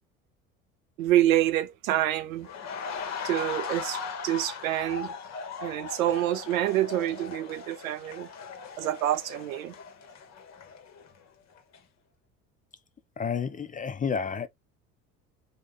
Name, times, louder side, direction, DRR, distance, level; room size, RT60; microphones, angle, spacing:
voice 1, 1.0-2.5 3.2-5.1 5.6-8.3 8.8-9.7, right 13 dB, 75° right, 0.7 m, -27 dB
sound 1, 2.4-11.3 11.6-11.8, left 5 dB, 40° left, 1.0 m, -39 dB
voice 2, 13.2-14.5, left 6 dB, 20° left, 0.5 m, -30 dB
4.7 x 2.2 x 3.8 m
figure-of-eight pair, 65°, 41 cm